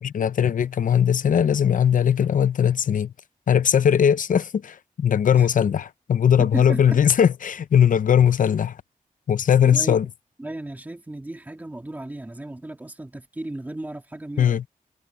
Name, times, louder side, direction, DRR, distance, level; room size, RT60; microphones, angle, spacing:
voice 1, 0.0-3.1 3.5-8.8 9.3-10.1 14.4-14.6, left 8 dB, 70° left, 0.6 m, -19 dB
voice 2, 6.4-7.0 9.6-10.0 10.4-14.7, right 1 dB, 10° right, 2.5 m, -34 dB
wide cardioid pair, 175°, 14 cm